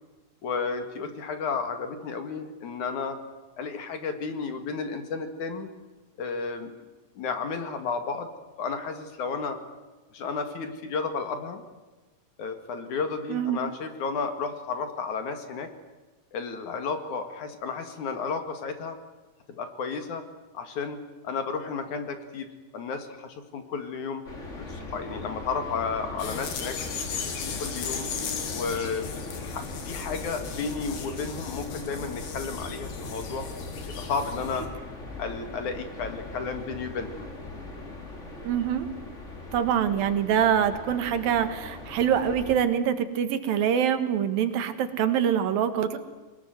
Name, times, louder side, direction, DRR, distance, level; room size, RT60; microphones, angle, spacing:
voice 1, 0.4-3.2 3.6-5.7 6.2-6.7 7.2-8.3 8.6-9.6 10.1-11.6 12.4-15.7 16.3-19.0 19.6-20.2 20.5-22.5 22.7-24.2 24.6-28.1 28.5-29.1 29.4-33.4 33.9-34.7 35.2-37.3, left 5 dB, 60° left, 7 dB, 3.3 m, -32 dB
sound 1, 24.2-42.6, left 2 dB, 20° left, 3.2 m, -40 dB
sound 2, 26.2-34.7, left 6 dB, 90° left, 4.3 m, -36 dB
voice 2, 38.4-38.9 39.5-46.0, right 9 dB, 80° right, 9 dB, 3.4 m, -25 dB
22.0 x 20.5 x 9.4 m, 1.2 s
omnidirectional pair, 4.1 m